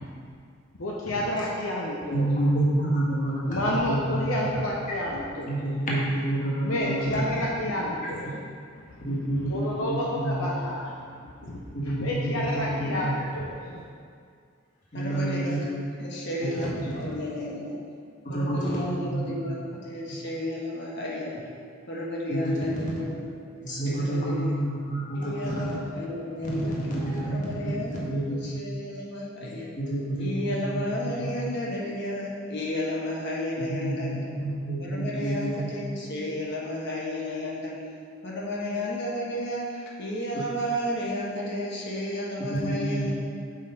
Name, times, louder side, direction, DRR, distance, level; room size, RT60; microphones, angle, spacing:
voice 1, 0.8-2.2 3.5-5.6 6.6-8.3 9.5-10.8 11.4-11.6 12.0-13.8, left 1 dB, 80° left, -3 dB, 0.7 m, -29 dB
voice 2, 2.1-4.5 4.9-5.0 5.4-7.4 9.0-10.7 11.7-13.3 14.9-15.6 16.4-17.1 18.2-19.5 22.3-23.0 23.6-25.8 26.4-28.6 29.4-29.5 29.8-31.3 33.6-35.7 42.4-43.1, right 1 dB, 40° left, -6 dB, 1.6 m, -29 dB
voice 3, 14.9-15.6 15.9-17.8 18.3-21.3 21.9-23.2 23.5-23.7 24.0-24.6 25.1-26.8 27.2-29.7 30.2-34.3 34.8-37.7 38.2-43.1, left 1 dB, 60° left, -4 dB, 1.3 m, -32 dB
6.4 x 5.2 x 4.1 m, 2.2 s
head